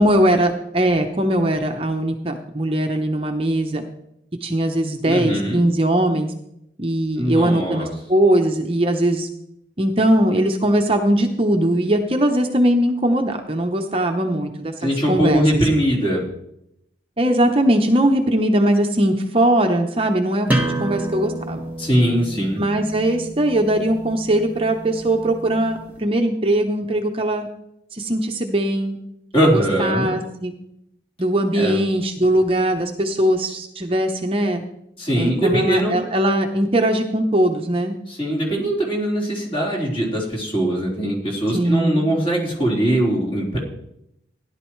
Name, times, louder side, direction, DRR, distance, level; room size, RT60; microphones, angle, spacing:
voice 1, 0.0-3.8 4.4-6.3 6.8-9.3 9.8-15.4 17.2-20.5 20.8-21.6 22.4-27.5 27.9-29.0 29.4-30.5 31.2-34.6 35.2-37.9 41.5-42.1, right 1 dB, 30° right, 4 dB, 0.8 m, -20 dB
voice 2, 5.1-5.6 7.2-7.9 14.8-16.3 21.8-22.6 29.3-30.1 31.5-31.8 35.0-36.0 38.1-43.6, right 1 dB, 30° left, -4 dB, 4.1 m, -21 dB
sound 1, 20.5-25.9, right 1 dB, 10° right, 1.6 m, -29 dB
16.5 x 11.5 x 3.2 m, 0.79 s
head